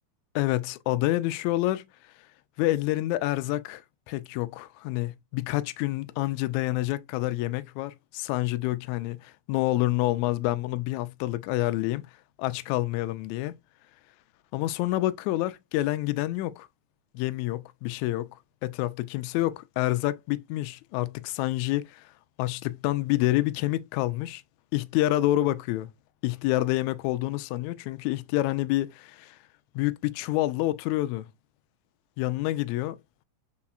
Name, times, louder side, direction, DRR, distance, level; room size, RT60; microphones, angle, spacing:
voice 1, 0.3-1.8 2.6-3.8 4.1-12.1 12.4-13.5 14.5-16.7 17.1-18.3 18.6-22.1 22.4-24.4 24.7-25.9 26.2-29.4 29.7-31.3 32.2-33.0, left 16 dB, 85° left, 1.7 m, -28 dB
4.6 x 4.2 x 2.4 m
omnidirectional pair, 3.8 m